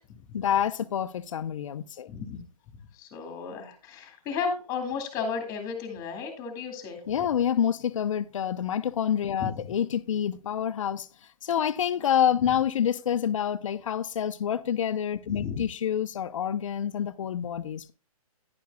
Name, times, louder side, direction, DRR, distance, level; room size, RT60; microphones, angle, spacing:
voice 1, 0.3-2.1 7.1-11.1 11.4-17.9, left 9 dB, 55° left, 0.6 m, -27 dB
voice 2, 2.1-2.4 2.9-7.0 9.4-9.5 15.3-15.6, left 5 dB, 20° left, 2.0 m, -33 dB
10.5 x 10.5 x 2.3 m
hypercardioid pair, 155°, 19 cm